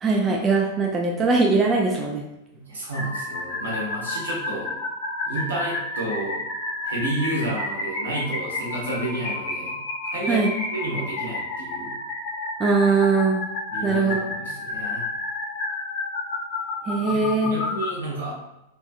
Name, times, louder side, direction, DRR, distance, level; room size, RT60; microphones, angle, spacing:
voice 1, 0.0-2.2 10.3-10.5 12.6-13.4 13.8-14.3 16.9-17.6, right 4 dB, 20° right, -1 dB, 0.3 m, -21 dB
voice 2, 2.5-4.7 5.3-6.4 6.8-9.8 10.1-10.4 10.7-12.0 13.7-15.1 17.0-18.4, right 1 dB, 70° right, -5 dB, 0.9 m, -31 dB
sound 1, 2.9-17.9, left 2 dB, 40° left, 0.8 m, -31 dB
2.5 x 2.2 x 2.4 m, 0.92 s
figure-of-eight pair, 95°, 0 cm